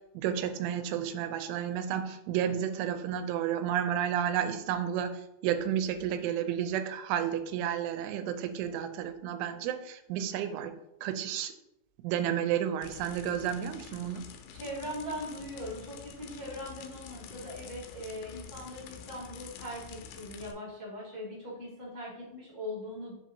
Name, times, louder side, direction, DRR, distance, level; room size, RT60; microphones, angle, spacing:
voice 1, 0.1-10.7 11.0-11.5 12.0-14.3, right 9 dB, 85° right, 9 dB, 3.1 m, -31 dB
sound 1, 12.8-20.5, left 7 dB, 85° left, 3.1 m, -48 dB
voice 2, 14.5-23.1, equal, 30° left, -6 dB, 0.5 m, -40 dB
7.5 x 7.4 x 2.7 m, 0.83 s
omnidirectional pair, 5.5 m